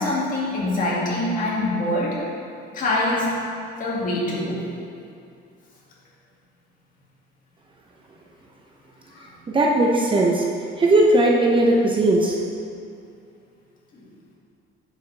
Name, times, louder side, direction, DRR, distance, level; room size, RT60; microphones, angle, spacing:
voice 1, 0.0-2.1 2.7-3.4 3.8-4.6 9.1-9.2 13.9-14.0, left 1 dB, 40° left, -5 dB, 2.2 m, -24 dB
voice 2, 9.5-10.4 10.8-12.4, right 1 dB, 25° right, -2 dB, 0.7 m, -18 dB
10.0 x 7.3 x 3.4 m, 2.5 s
cardioid pair, 140°, 21 cm